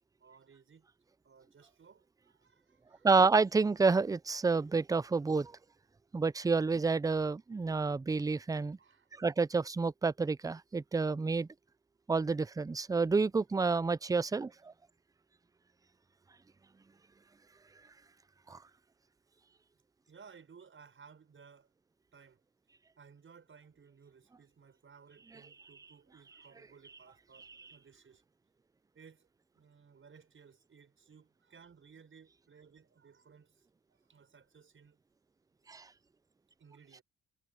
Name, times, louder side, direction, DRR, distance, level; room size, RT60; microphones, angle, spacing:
voice 1, 0.2-0.9 1.2-3.1 8.8-9.1 20.1-21.7 22.1-22.4 23.0-28.2 28.9-29.3 29.5-35.0 36.6-37.0, right 6 dB, 40° right, 6.2 m, -59 dB
voice 2, 3.0-5.5 6.1-8.8 9.2-11.5 12.1-14.7 18.5-18.6 35.7-35.9, right 4 dB, 10° right, 0.4 m, -29 dB
cardioid pair, 90°, 30 cm